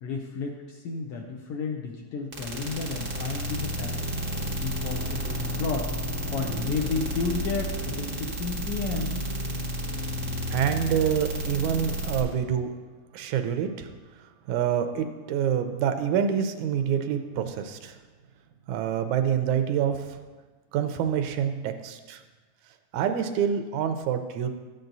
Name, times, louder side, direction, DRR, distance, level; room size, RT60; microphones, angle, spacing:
voice 1, 0.0-4.2 4.6-5.9 6.3-9.2, left 4 dB, 75° left, 1 dB, 1.4 m, -32 dB
sound 1, 2.3-12.2, equal, 60° right, 0.5 m, -31 dB
voice 2, 10.5-12.7 13.1-13.9 14.5-18.0 18.7-20.2 20.7-22.2 22.9-24.5, right 8 dB, 85° right, 7 dB, 2.0 m, -26 dB
13.5 x 8.9 x 2.7 m, 1.3 s
omnidirectional pair, 3.4 m